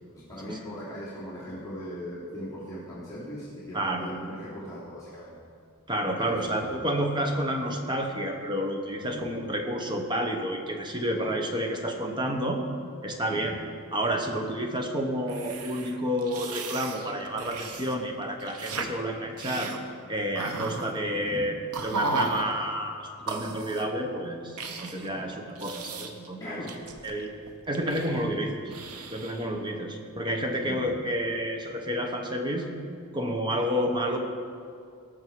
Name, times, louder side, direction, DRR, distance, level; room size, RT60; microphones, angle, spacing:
voice 1, 0.1-5.4 6.1-6.7 9.0-9.3 13.3-13.5 21.1-21.5 25.0-25.2 26.4-27.1 30.6-30.9, equal, 15° left, -10 dB, 2.8 m, -40 dB
voice 2, 3.7-4.2 5.9-12.6 13.0-13.6 13.9-19.7 20.1-21.5 21.8-26.6 27.0-27.3 27.7-28.6 29.1-32.7 33.1-34.2, equal, 20° right, 3 dB, 1.0 m, -30 dB
sound 1, 15.3-17.9 18.2-18.9 19.4-19.8 20.3-20.9 21.7-22.5 23.3-23.9 24.6-25.1 25.5-26.3 26.7-28.4 28.7-29.5, right 3 dB, 90° right, 1.0 m, -35 dB
18.5 x 6.5 x 4.7 m, 2.4 s
head